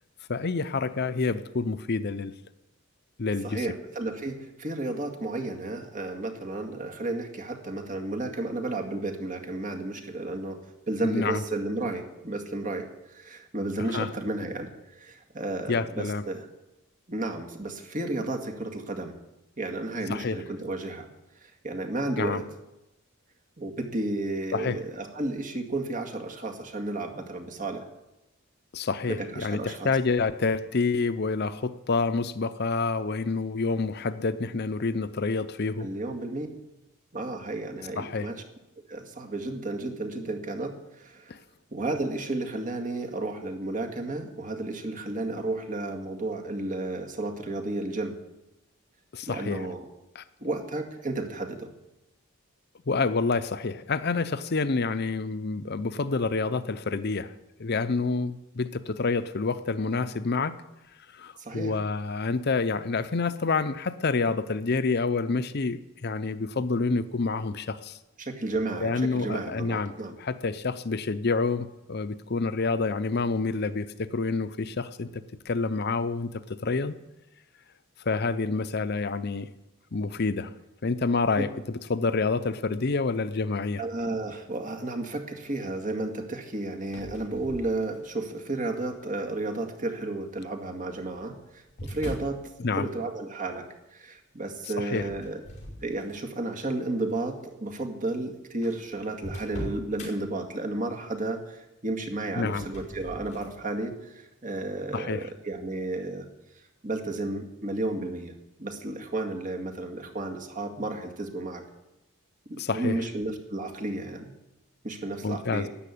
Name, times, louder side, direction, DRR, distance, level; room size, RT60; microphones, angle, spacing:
voice 1, 0.3-2.3 3.2-3.6 11.0-11.4 13.9-14.1 15.7-16.2 20.1-20.4 22.2-22.4 24.5-24.8 28.7-35.9 38.0-38.3 41.3-41.4 49.1-49.6 50.2-50.3 52.9-57.3 57.6-60.5 61.1-68.0 68.8-69.9 70.2-77.0 78.0-79.5 79.9-80.5 80.8-83.8 92.6-92.9 94.8-95.1 102.4-102.7 104.9-105.2 112.6-113.0 115.2-115.7, left 4 dB, 50° left, 13 dB, 0.7 m, -28 dB
voice 2, 3.4-10.6 10.9-16.5 17.1-19.2 19.6-21.1 21.4-22.4 23.6-27.9 29.1-29.9 35.8-36.5 37.1-38.4 38.9-41.4 41.7-48.2 49.2-49.9 50.4-51.7 61.4-61.7 68.2-70.2 83.8-92.4 92.7-95.4 95.8-106.3 106.8-108.3 108.6-111.6 112.5-114.3 114.8-115.7, right 2 dB, 40° right, 3 dB, 2.1 m, -32 dB
sound 1, 86.8-88.3 88.9-89.4 90.5-92.4 94.9-96.4 96.9-97.1 97.9-98.0 98.2-98.3 98.6-100.1 102.2-103.5, equal, 35° left, 5.2 m, -41 dB
13.0 x 10.0 x 8.6 m, 0.95 s
head